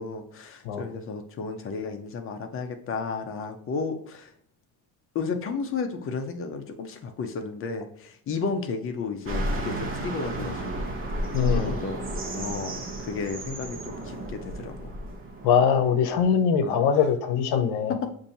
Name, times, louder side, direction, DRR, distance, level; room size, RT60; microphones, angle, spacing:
voice 1, 0.0-4.3 5.1-12.0 12.3-14.9 16.6-17.1 17.9-18.1, left 4 dB, 35° left, 6 dB, 0.6 m, -33 dB
sound 1, 9.2-16.3, right 1 dB, 35° right, 0.9 m, -32 dB
voice 2, 11.3-11.7 15.4-18.0, left 7 dB, 80° left, 9 dB, 0.8 m, -22 dB
6.7 x 2.6 x 2.8 m, 0.66 s
cardioid pair, 160°, 37 cm